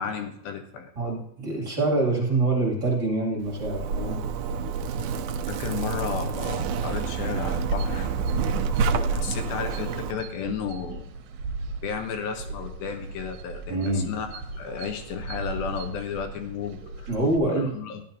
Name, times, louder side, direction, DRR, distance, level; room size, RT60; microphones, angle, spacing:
voice 1, 0.0-0.9 5.5-8.1 9.1-11.1 11.8-17.1 17.4-18.0, left 6 dB, 80° left, 6 dB, 2.7 m, -33 dB
voice 2, 1.0-4.2 13.7-14.1 17.1-17.7, right 2 dB, 30° right, -3 dB, 3.0 m, -25 dB
Zipper (clothing), 3.5-10.1, right 5 dB, 90° right, 1.7 m, -28 dB
sound 1, 7.6-17.4, right 3 dB, 75° right, 2.5 m, -38 dB
14.0 x 11.0 x 2.8 m, 0.70 s
omnidirectional pair, 4.3 m